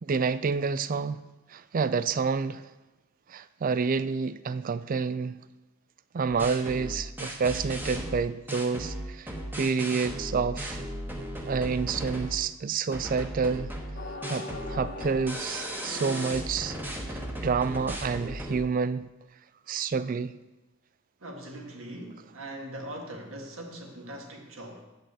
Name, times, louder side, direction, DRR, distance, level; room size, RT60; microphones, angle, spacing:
voice 1, 0.0-1.2 1.5-2.7 3.3-5.4 6.1-10.8 11.5-13.7 14.3-16.8 17.1-19.1 19.7-20.4, right 5 dB, 40° right, 0.3 m, -29 dB
sound 1, 6.3-12.5 12.9-18.6, equal, 10° right, 1.1 m, -36 dB
sound 2, 13.9-17.3, left 3 dB, 45° left, 1.0 m, -42 dB
voice 2, 21.2-24.9, right 1 dB, 65° right, 1.8 m, -41 dB
7.7 x 6.4 x 8.1 m
head